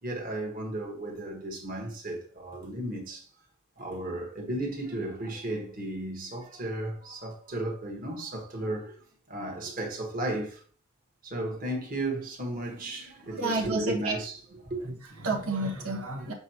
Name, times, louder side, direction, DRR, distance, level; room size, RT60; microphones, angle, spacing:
voice 1, 0.0-3.3 3.8-8.9 9.3-10.6 11.2-15.3, right 1 dB, 40° right, 1.4 m, -34 dB
voice 2, 13.4-14.2 15.2-16.3, right 2 dB, 80° right, 1.4 m, -30 dB
7.1 x 4.6 x 3.0 m
head